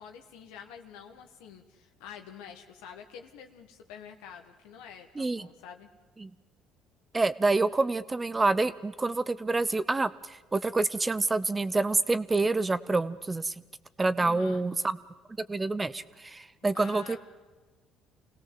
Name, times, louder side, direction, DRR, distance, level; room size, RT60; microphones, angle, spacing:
voice 1, 0.0-5.9 14.2-14.6 16.7-17.2, left 8 dB, 85° left, 3 dB, 1.5 m, -47 dB
voice 2, 5.2-5.5 6.2-6.3 7.1-13.5 14.0-15.0 15.5-17.2, right 3 dB, 20° right, 15 dB, 0.8 m, -27 dB
26.5 x 17.5 x 7.7 m, 1.2 s
supercardioid pair, 80°, 0 cm